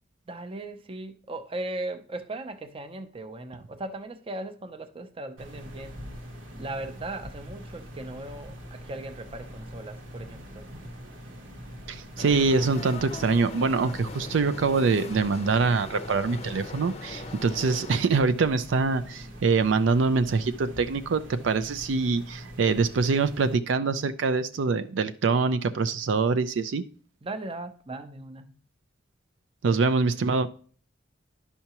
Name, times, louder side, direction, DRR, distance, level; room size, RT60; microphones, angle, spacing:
voice 1, 0.3-6.0 6.5-10.7 27.2-28.6 29.7-29.8, right 2 dB, 30° right, 0.6 m, -38 dB
sound 1, 5.4-23.5, equal, 90° right, 1.3 m, -44 dB
voice 2, 11.9-26.8 29.6-30.5, right 4 dB, 70° right, 0.4 m, -24 dB
sound 2, 12.2-18.0, left 3 dB, 35° left, 0.6 m, -40 dB
10.5 x 5.6 x 2.9 m
head